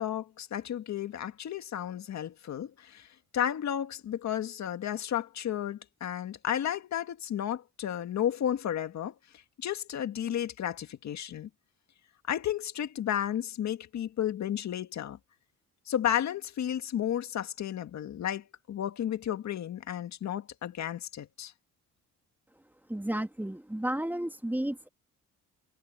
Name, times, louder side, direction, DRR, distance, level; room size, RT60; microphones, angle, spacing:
voice 1, 0.0-3.1 3.3-9.1 9.6-11.5 12.3-15.2 15.9-21.5, left 10 dB, 65° left, 1.9 m, -33 dB
voice 2, 22.9-24.9, right 1 dB, 5° right, 1.8 m, -32 dB
cardioid pair, 90°, 30 cm